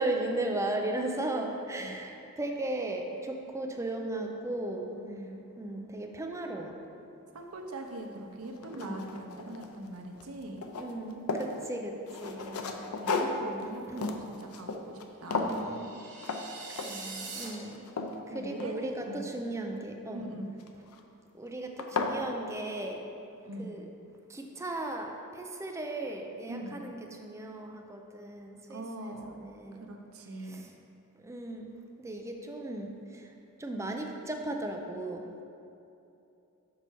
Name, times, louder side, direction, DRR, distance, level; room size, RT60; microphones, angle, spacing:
voice 1, 0.0-4.9 5.6-6.7 8.7-9.1 10.8-12.6 13.9-14.1 15.4-15.9 16.7-17.8 18.3-20.2 21.4-23.0 23.6-23.8 24.3-29.9 30.5-30.7 31.2-31.7 32.0-32.9 33.6-35.4, right 2 dB, 15° right, 2 dB, 0.5 m, -36 dB
voice 2, 5.0-5.5 7.3-10.8 12.6-15.8 16.8-17.5 18.3-19.4 20.1-20.5 23.5-23.8 26.5-26.8 28.7-29.5 29.8-30.6, right 1 dB, 80° right, 3 dB, 0.7 m, -42 dB
sound 1, 7.9-8.0 8.4-9.9 10.2-11.5 12.1-15.1 15.3-15.7 16.2-16.4 16.8-17.1 17.5-19.1 20.6-21.0 21.5-21.6 21.8-22.2, left 3 dB, 90° left, 0.5 m, -34 dB
sound 2, 15.4-17.5, right 4 dB, 55° right, 1.3 m, -43 dB
6.2 x 5.5 x 4.5 m, 2.8 s
head